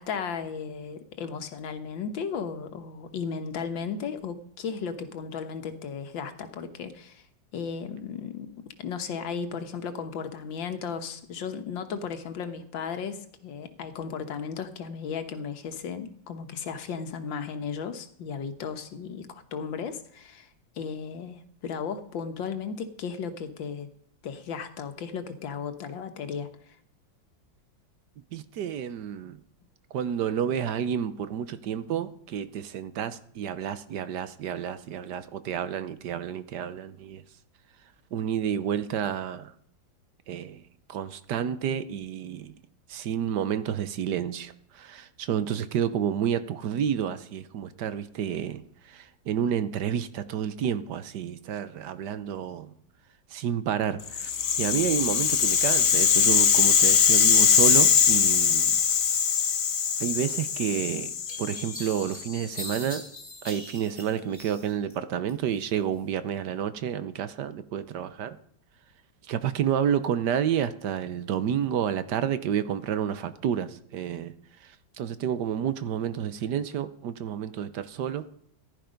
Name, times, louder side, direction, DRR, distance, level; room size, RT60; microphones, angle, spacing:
voice 1, 0.0-7.2 7.5-20.5 20.8-23.9 24.2-26.8, left 6 dB, 85° left, 8 dB, 1.9 m, -35 dB
voice 2, 28.3-29.4 29.9-37.2 38.1-39.5 40.3-40.6 40.9-42.6 42.9-52.7 53.3-54.3 54.6-58.8 60.0-61.1 61.4-63.0 63.4-68.4 69.3-74.3 74.6-78.2, right 9 dB, 70° right, 13 dB, 1.3 m, -30 dB
Rattle (instrument), 54.1-62.3, left 7 dB, 65° left, 1.7 m, -22 dB
sound 1, 60.5-60.6 61.3-64.9 65.3-66.0, left 1 dB, 15° left, 4.0 m, -42 dB
15.0 x 11.5 x 5.2 m, 0.68 s
omnidirectional pair, 2.0 m